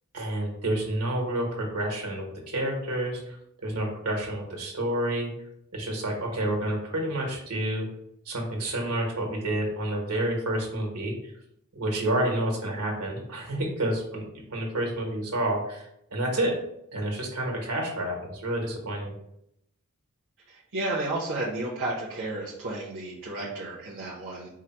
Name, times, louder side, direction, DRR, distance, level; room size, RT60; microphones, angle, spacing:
voice 1, 0.1-3.4 3.6-5.3 5.7-7.9 8.2-11.1 11.7-14.2 14.5-16.5 16.9-19.1, right 1 dB, 80° right, 0 dB, 1.4 m, -29 dB
voice 2, 20.7-24.5, right 2 dB, 60° right, -6 dB, 1.0 m, -32 dB
4.9 x 2.2 x 4.4 m, 0.77 s
head